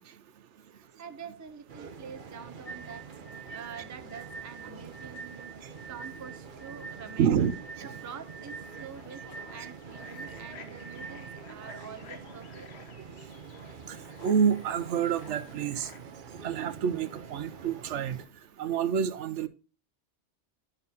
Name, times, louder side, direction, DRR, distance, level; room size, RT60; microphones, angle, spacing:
voice 1, 0.7-5.5 5.9-7.4 7.8-13.1, right 7 dB, 25° right, 0.4 m, -46 dB
sound 1, 1.7-18.3, right 6 dB, 50° right, 0.9 m, -46 dB
sound 2, 2.7-11.8, right 4 dB, 90° left, 1.7 m, -45 dB
voice 2, 7.2-7.5 7.8-7.9 13.9-15.9 16.4-18.2 18.6-19.5, right 7 dB, 85° right, 1.0 m, -28 dB
sound 3, 8.4-16.0, left 6 dB, 65° left, 1.2 m, -52 dB
11.5 x 5.6 x 2.8 m
omnidirectional pair, 1.2 m